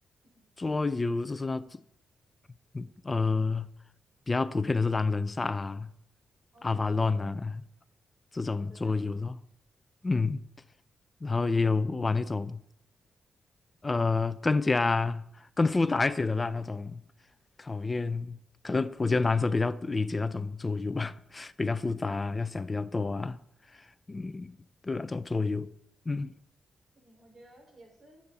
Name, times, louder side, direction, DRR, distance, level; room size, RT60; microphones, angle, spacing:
voice 1, 0.6-1.8 2.7-3.7 4.3-5.9 6.6-7.6 8.3-9.3 10.0-10.4 11.2-12.6 13.8-17.0 17.6-23.4 24.1-24.6 24.8-25.7 26.1-26.3, left 3 dB, 25° left, 0.7 m, -29 dB
voice 2, 6.5-7.4 8.4-9.1 27.0-28.2, right 1 dB, 45° right, 5.3 m, -56 dB
25.0 x 8.7 x 4.3 m
cardioid pair, 95°, 0 cm